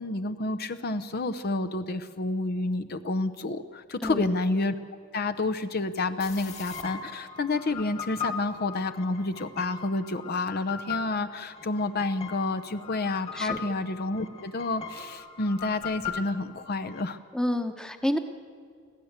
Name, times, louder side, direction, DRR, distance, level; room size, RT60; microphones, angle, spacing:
voice 1, 0.0-4.7 5.1-17.2, left 2 dB, 50° left, 11 dB, 0.7 m, -29 dB
voice 2, 4.0-4.3 13.3-13.6 17.3-18.2, left 1 dB, 5° left, 7 dB, 1.0 m, -29 dB
sound 1, 6.2-17.0, left 6 dB, 35° left, 2.1 m, -39 dB
25.5 x 16.0 x 8.1 m, 2.2 s
head